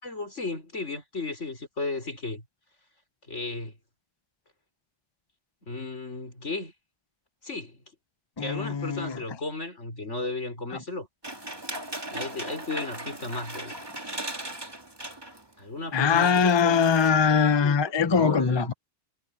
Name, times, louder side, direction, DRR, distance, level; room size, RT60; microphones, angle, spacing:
voice 1, 0.0-2.4 3.3-3.7 5.7-6.7 7.4-7.8 8.4-11.1 12.1-13.8 15.6-16.9 17.6-18.7, left 3 dB, 75° left, 5.4 m, -34 dB
voice 2, 8.4-9.2 15.9-18.7, left 6 dB, 25° left, 0.7 m, -22 dB
sound 1, 11.2-15.5 15.8-15.9 16.2-17.1, right 1 dB, 20° right, 2.2 m, -38 dB
omnidirectional pair, 1.2 m